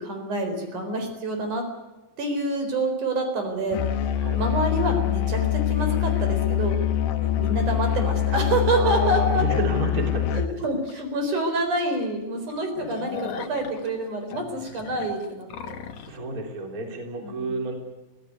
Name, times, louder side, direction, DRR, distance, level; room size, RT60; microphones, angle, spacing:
voice 1, 0.0-1.7 2.2-4.1 4.3-6.8 7.1-9.4 10.3-15.8 17.2-17.5, right 1 dB, 55° right, 5 dB, 5.6 m, -27 dB
Musical instrument, 3.7-10.6, left 13 dB, 80° left, 2.9 m, -24 dB
voice 2, 8.8-10.4 16.1-17.7, right 2 dB, 25° right, 2 dB, 3.7 m, -31 dB
sound 1, 10.9-11.0 11.5-11.6 11.9-12.0 12.4-16.2, left 7 dB, 55° left, 2.3 m, -39 dB
24.5 x 16.5 x 9.6 m, 1.1 s
omnidirectional pair, 4.2 m